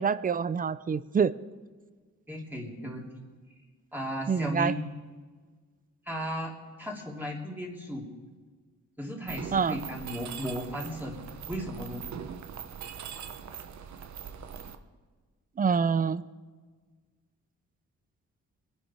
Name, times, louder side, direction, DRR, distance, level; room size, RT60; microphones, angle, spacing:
voice 1, 0.0-1.3 4.3-4.7 9.5-9.8 15.6-16.2, right 6 dB, 30° right, 17 dB, 0.4 m, -26 dB
voice 2, 2.3-3.2 3.9-4.9 6.0-6.5 6.8-8.1 9.0-11.2 11.5-12.0, equal, 5° right, -2 dB, 2.9 m, -35 dB
Mechanisms, 9.3-14.7, right 7 dB, 65° right, 1.0 m, -41 dB
23.0 x 10.0 x 4.4 m, 1.5 s
wide cardioid pair, 120°, 31 cm